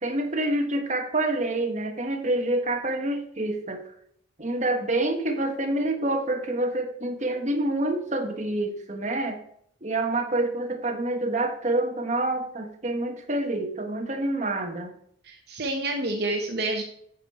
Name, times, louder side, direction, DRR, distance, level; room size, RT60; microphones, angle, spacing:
voice 1, 0.0-3.9 4.4-9.4 9.8-14.9, right 2 dB, 35° right, 3 dB, 1.2 m, -27 dB
voice 2, 15.3-16.8, right 2 dB, 55° right, 2 dB, 0.9 m, -28 dB
9.1 x 6.4 x 4.2 m, 0.68 s
head